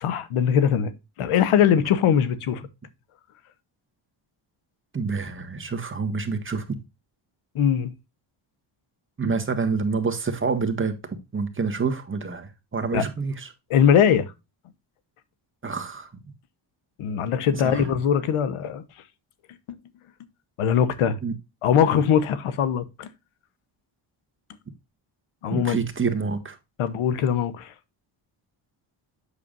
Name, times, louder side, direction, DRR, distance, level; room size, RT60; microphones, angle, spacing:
voice 1, 0.0-0.9 1.2-2.6 7.5-7.9 12.9-13.0 13.7-14.3 17.0-18.8 20.6-21.2 21.6-23.1 25.4-25.8 26.8-27.7, left 8 dB, 85° left, 1.1 m, -21 dB
voice 2, 4.9-6.8 9.2-11.0 11.3-13.5 15.6-16.1 17.5-17.9 21.2-21.3 25.5-26.6, right 4 dB, 25° right, 1.5 m, -27 dB
8.2 x 6.8 x 2.5 m
cardioid pair, 95°, 49 cm